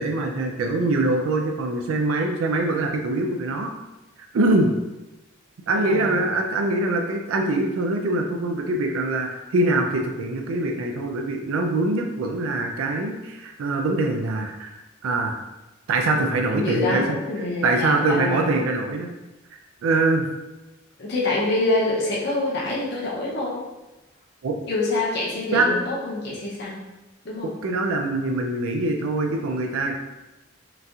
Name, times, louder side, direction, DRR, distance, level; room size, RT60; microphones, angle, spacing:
voice 1, 0.0-3.7 4.3-4.7 5.7-14.8 15.0-15.4 15.9-17.0 17.6-19.1 19.8-20.3 24.4-24.6 25.5-25.7 27.6-30.0, right 2 dB, 80° right, 2 dB, 0.4 m, -23 dB
voice 2, 5.7-6.3 16.5-18.5 21.0-23.7 24.6-26.8 27.2-27.6, left 2 dB, 50° left, -4 dB, 0.6 m, -26 dB
3.8 x 2.7 x 2.3 m, 1.0 s
head